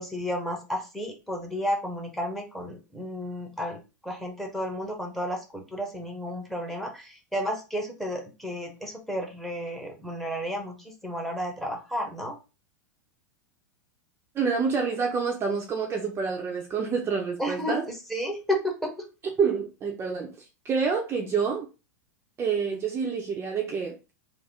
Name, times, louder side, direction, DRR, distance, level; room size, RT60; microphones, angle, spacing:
voice 1, 0.0-12.3 17.4-17.8 18.1-19.1, equal, ahead, 1.0 m, -32 dB
voice 2, 14.3-17.9 19.4-21.7 22.4-24.0, right 5 dB, 25° right, 0.7 m, -28 dB
3.4 x 2.1 x 3.5 m
hypercardioid pair, 100°, 10 cm